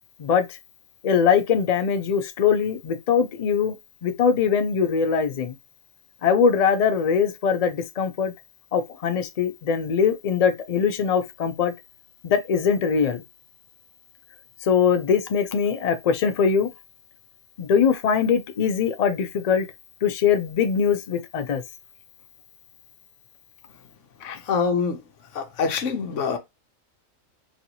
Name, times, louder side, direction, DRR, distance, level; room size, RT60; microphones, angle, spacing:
voice 1, 1.0-3.7 4.0-5.5 6.2-8.3 8.7-11.7 12.2-13.2 14.7-16.7 17.6-19.7 20.0-21.6 24.2-24.4, left 6 dB, 85° left, 0.3 m, -22 dB
voice 2, 24.5-25.0 25.3-26.4, left 5 dB, 65° left, 1.0 m, -24 dB
3.1 x 2.7 x 2.7 m
omnidirectional pair, 1.4 m